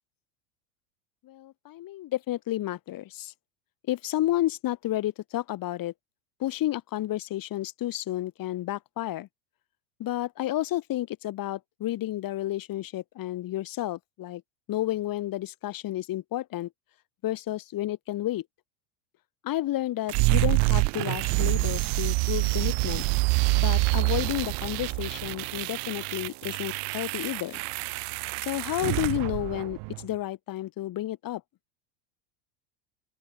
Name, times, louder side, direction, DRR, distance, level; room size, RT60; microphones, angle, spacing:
voice 1, 1.2-3.3 3.9-5.9 6.4-9.3 10.0-14.4 14.7-16.7 17.2-18.4 19.4-23.0 23.6-27.6 28.4-31.4, left 14 dB, 45° left, 6.7 m, -31 dB
sound 1, 20.1-30.1, right 31 dB, 60° right, 2.8 m, -27 dB
open air
supercardioid pair, 110°, 46 cm